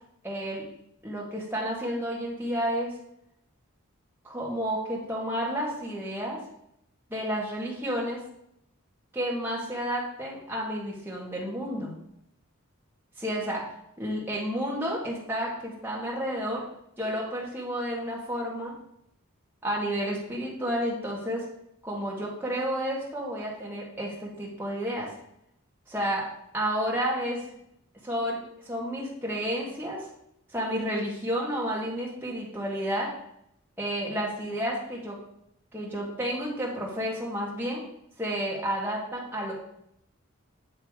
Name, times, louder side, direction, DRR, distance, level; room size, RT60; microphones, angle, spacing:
voice 1, 0.2-0.6 1.0-2.9 4.2-6.4 7.1-8.2 9.1-11.9 13.2-13.7 14.0-16.6 17.0-18.7 19.6-21.5 21.8-25.1 25.9-26.3 26.5-27.4 28.0-30.1 30.5-33.1 33.8-35.2 35.7-37.8 38.2-39.5, equal, 10° right, -4 dB, 1.6 m, -31 dB
8.9 x 3.3 x 4.7 m, 0.75 s
head